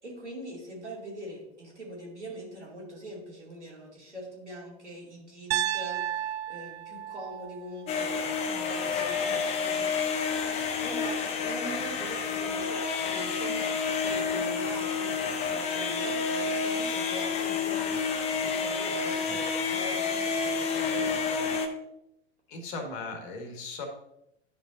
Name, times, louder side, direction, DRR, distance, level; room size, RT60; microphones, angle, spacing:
voice 1, 0.0-9.9 10.8-21.4, right 1 dB, 85° right, -3 dB, 2.8 m, -42 dB
Piano, 5.5-9.6, right 11 dB, 65° right, 0.5 m, -34 dB
sound 1, 7.9-21.7, left 5 dB, 20° left, 0.6 m, -29 dB
voice 2, 22.5-23.9, left 3 dB, 45° left, 4 dB, 1.7 m, -38 dB
10.5 x 5.3 x 2.6 m, 0.83 s
figure-of-eight pair, 105°, 34 cm